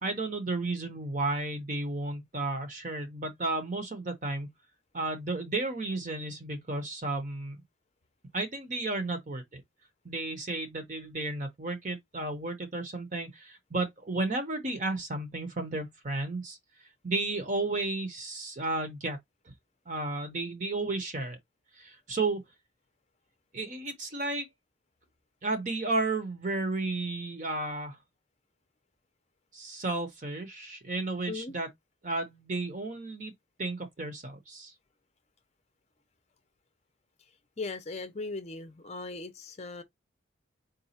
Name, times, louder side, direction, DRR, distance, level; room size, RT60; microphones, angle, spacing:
voice 1, 0.0-4.5 4.9-7.6 8.3-9.6 10.0-16.6 17.0-19.2 19.9-21.4 21.8-22.4 23.5-24.5 25.4-28.0 29.5-31.7 32.0-33.3 33.6-34.7, right 2 dB, 40° right, 0.7 m, -33 dB
voice 2, 37.6-39.8, left 3 dB, 35° left, 0.6 m, -38 dB
3.9 x 2.3 x 4.1 m
head